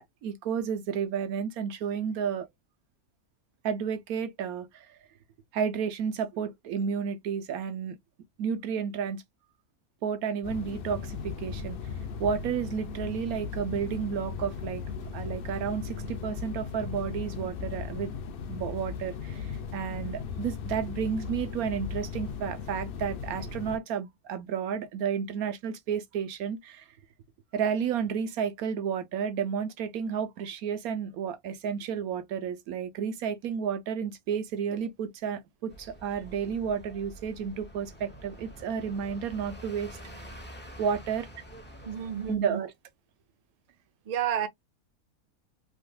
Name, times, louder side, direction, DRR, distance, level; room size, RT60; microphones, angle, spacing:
voice 1, 0.0-2.5 3.6-5.0 5.5-8.0 8.4-9.2 10.0-11.8 12.2-14.8 15.1-18.1 18.5-26.8 27.5-40.0 40.8-41.3 42.3-42.7, right 7 dB, 80° right, 1.2 m, -32 dB
sound 1, 10.4-23.8, left 6 dB, 65° left, 0.5 m, -37 dB
sound 2, 35.7-42.3, right 1 dB, 10° left, 0.8 m, -47 dB
voice 2, 41.8-42.6 44.1-44.5, right 9 dB, 60° right, 0.4 m, -30 dB
3.4 x 3.1 x 2.2 m
omnidirectional pair, 1.5 m